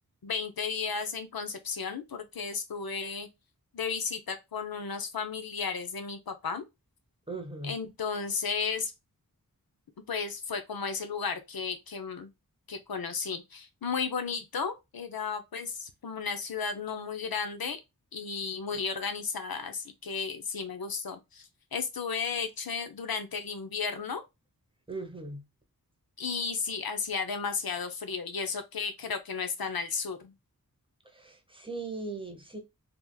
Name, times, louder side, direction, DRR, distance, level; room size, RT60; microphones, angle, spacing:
voice 1, 0.2-3.3 3.7-6.6 7.6-8.9 10.1-12.3 12.7-17.8 18.1-24.2 26.2-30.3, left 5 dB, 75° left, 0.7 m, -34 dB
voice 2, 7.3-7.7 24.9-25.4 31.1-32.6, right 3 dB, 15° right, 1.0 m, -38 dB
3.4 x 2.9 x 2.3 m
wide cardioid pair, 55°, 36 cm